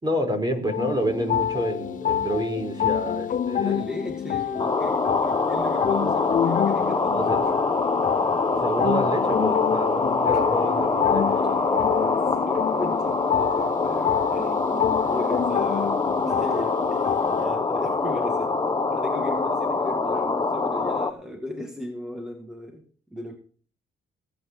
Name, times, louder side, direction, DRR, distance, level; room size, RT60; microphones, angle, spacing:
voice 1, 0.0-3.8 7.1-7.4 8.5-11.2, right 1 dB, 20° right, 5 dB, 5.0 m, -28 dB
sound 1, 0.7-17.5, left 10 dB, 40° left, 0.5 m, -28 dB
voice 2, 3.5-7.7 10.3-10.4 11.4-18.6 18.9-23.4, left 1 dB, 5° right, 4 dB, 2.2 m, -36 dB
sound 2, 4.6-21.1, left 3 dB, 20° left, 1.6 m, -24 dB
17.5 x 8.7 x 4.8 m, 0.43 s
cardioid pair, 90°, 20 cm